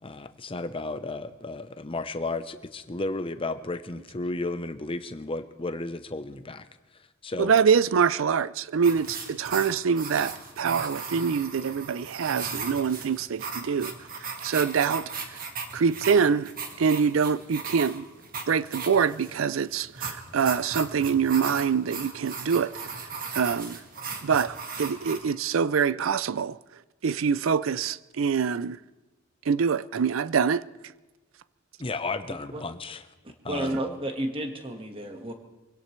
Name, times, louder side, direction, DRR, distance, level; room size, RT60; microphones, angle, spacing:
voice 1, 0.0-6.7 6.9-7.5 31.8-33.0 33.4-33.7, left 2 dB, 25° left, 0.8 m, -33 dB
voice 2, 7.4-13.9 14.4-15.4 15.7-16.5 16.8-18.1 18.5-22.7 23.3-23.8 24.2-26.6 27.0-28.8 29.5-30.6, right 6 dB, 65° right, 0.4 m, -25 dB
sound 1, 8.8-25.2, right 5 dB, 45° right, 1.7 m, -37 dB
voice 3, 32.3-32.6 33.2-35.3, right 1 dB, 25° right, 1.6 m, -32 dB
24.5 x 17.5 x 3.2 m
head